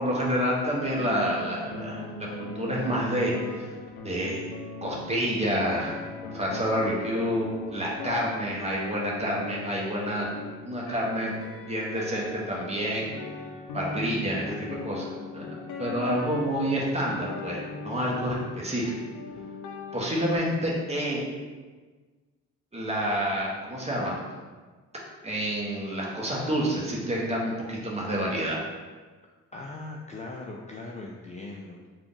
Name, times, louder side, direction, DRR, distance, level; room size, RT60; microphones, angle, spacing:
voice 1, 0.0-2.1 2.4-3.6 4.0-4.4 4.8-6.0 6.3-10.3 10.6-13.1 13.7-15.4 15.8-18.9 19.9-21.2 22.7-24.2 25.2-28.6, equal, 20° right, -3 dB, 1.0 m, -28 dB
sound 1, 0.8-20.4, left 3 dB, 90° left, 0.5 m, -40 dB
voice 2, 29.5-31.9, left 2 dB, 25° left, -2 dB, 0.3 m, -39 dB
3.6 x 2.4 x 3.8 m, 1.4 s
cardioid pair, 90°, 30 cm